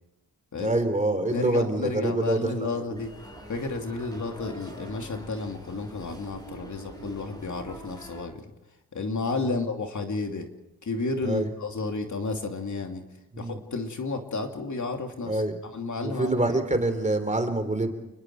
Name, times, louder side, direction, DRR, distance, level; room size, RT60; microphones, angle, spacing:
voice 1, 0.6-3.0 9.4-9.6 11.2-11.5 13.3-13.6 15.3-15.6 16.0-18.0, right 2 dB, 20° right, 8 dB, 3.3 m, -26 dB
voice 2, 1.3-3.1 3.5-8.4 8.9-10.5 10.8-13.1 13.4-15.4 15.7-16.5, left 3 dB, 50° left, 3 dB, 2.8 m, -32 dB
sound 1, 2.9-8.2, right 1 dB, 10° left, 7.9 m, -44 dB
29.5 x 21.0 x 4.8 m, 0.96 s
cardioid pair, 85°, 37 cm